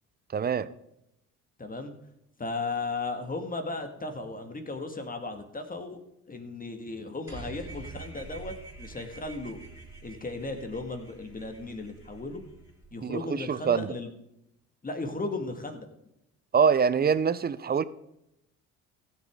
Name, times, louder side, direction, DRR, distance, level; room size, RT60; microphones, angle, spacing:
voice 1, 0.3-0.7 13.0-13.9 16.5-17.8, right 6 dB, 25° right, 0.6 m, -24 dB
voice 2, 1.6-1.9 2.4-6.0 6.3-9.6 10.0-12.4 12.9-14.1 14.8-15.9, left 3 dB, 25° left, 1.8 m, -36 dB
sound 1, 7.3-12.9, right 3 dB, 5° right, 4.1 m, -46 dB
15.5 x 6.8 x 3.7 m
hypercardioid pair, 65°, 37 cm